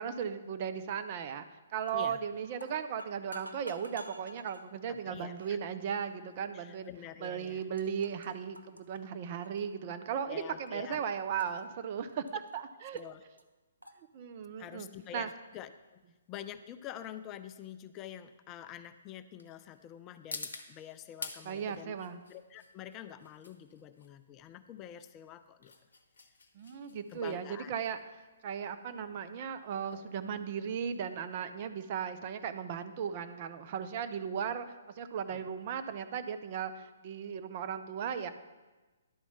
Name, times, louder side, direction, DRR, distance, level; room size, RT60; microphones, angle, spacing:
voice 1, 0.0-6.9 7.2-13.0 14.1-15.3 21.4-22.2 26.5-28.0 28.4-38.3, right 7 dB, 40° right, 9 dB, 0.5 m, -37 dB
sound 1, 1.9-2.2 2.5-4.6 5.4-5.6 6.3-6.4 7.2-7.3 7.5-8.3 8.5-10.2 10.4-11.0 11.4-12.6 13.0-13.1 13.4-13.5 13.8-14.0, equal, 90° right, 0.6 m, -50 dB
voice 2, 4.9-5.6 6.5-7.6 10.2-11.0 12.9-13.2 14.6-16.0 16.3-22.0 22.3-25.7 27.1-27.7 35.3-35.4, left 11 dB, 25° left, 10 dB, 0.3 m, -47 dB
sound 2, 14.8-31.3, left 3 dB, 65° left, 0.8 m, -50 dB
11.0 x 4.2 x 5.6 m, 1.2 s
figure-of-eight pair, 125°, 0 cm